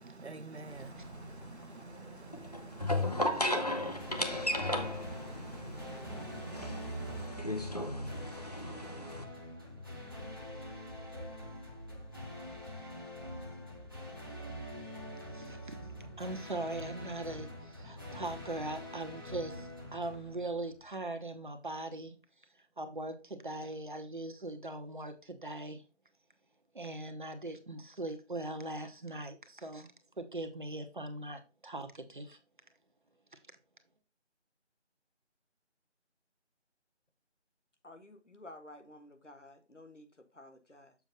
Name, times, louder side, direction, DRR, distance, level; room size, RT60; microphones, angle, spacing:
voice 1, 0.0-7.3, right 3 dB, 65° right, 0.9 m, -49 dB
sound 1, 0.7-9.2, left 1 dB, 35° left, 0.7 m, -36 dB
sound 2, 4.0-21.0, equal, 20° right, 0.9 m, -45 dB
voice 2, 15.3-15.8 16.2-22.2 22.8-25.8 26.7-29.9 30.2-32.4, right 2 dB, 45° right, 1.0 m, -40 dB
voice 3, 37.8-41.0, left 1 dB, 85° left, 1.5 m, -53 dB
7.1 x 5.4 x 3.7 m
figure-of-eight pair, 165°, 35 cm